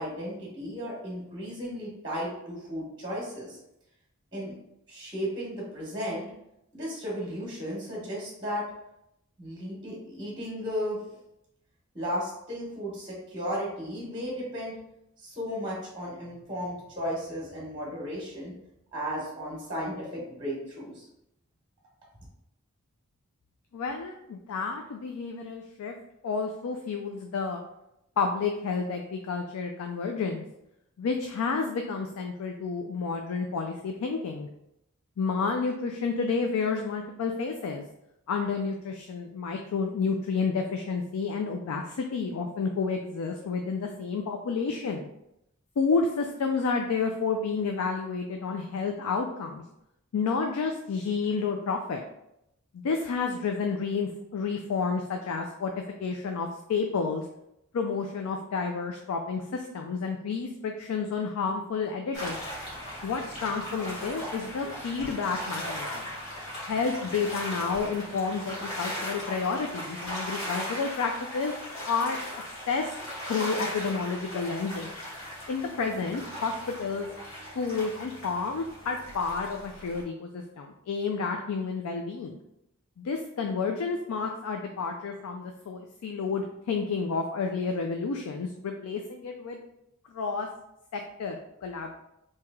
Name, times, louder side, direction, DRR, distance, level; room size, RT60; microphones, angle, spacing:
voice 1, 0.0-3.6 4.3-4.5 4.9-6.3 6.7-8.6 9.4-11.1 11.9-14.8 15.2-18.5 18.9-21.1, equal, 20° right, -4 dB, 1.0 m, -34 dB
voice 2, 23.7-25.9 26.2-27.6 28.2-30.4 31.0-34.5 35.2-37.8 38.3-45.1 45.8-49.6 50.1-52.0 52.7-55.7 56.0-57.3 57.7-62.4 63.0-66.1 66.6-71.5 71.8-72.2 72.7-73.0 73.3-74.9 75.5-77.1 77.5-82.4 83.0-89.6 90.1-90.5 90.9-91.9, left 4 dB, 85° left, 3 dB, 0.4 m, -30 dB
sound 1, 62.1-80.0, equal, 60° left, 1.4 m, -38 dB
3.1 x 2.8 x 3.5 m, 0.83 s
head